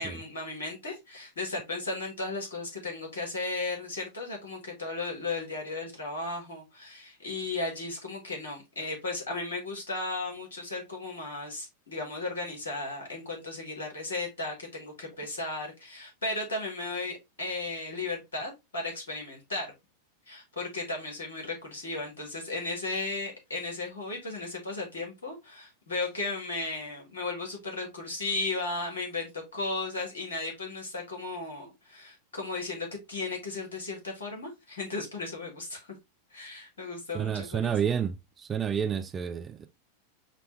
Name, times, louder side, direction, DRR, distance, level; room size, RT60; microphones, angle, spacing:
voice 1, 0.0-19.7 20.3-35.9 36.3-37.7, left 3 dB, 70° left, 1.5 m, -35 dB
voice 2, 37.1-39.7, right 8 dB, 20° right, 0.3 m, -30 dB
5.0 x 2.3 x 3.0 m
figure-of-eight pair, 90°, 0 cm